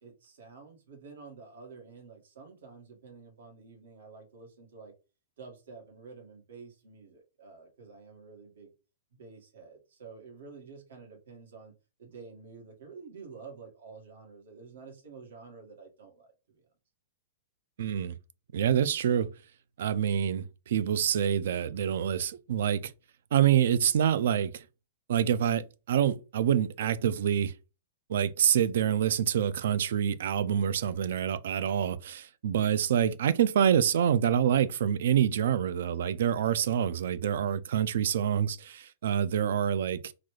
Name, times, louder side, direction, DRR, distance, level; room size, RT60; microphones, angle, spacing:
voice 1, 0.0-4.9 5.4-8.7 9.1-11.7 12.0-16.6, right 4 dB, 85° right, 1.7 m, -49 dB
voice 2, 17.8-18.1 18.5-19.3 19.8-22.9 23.3-24.6 25.1-27.5 28.1-40.1, right 9 dB, 65° right, 0.4 m, -26 dB
3.9 x 2.4 x 3.2 m
hypercardioid pair, 165°, 0 cm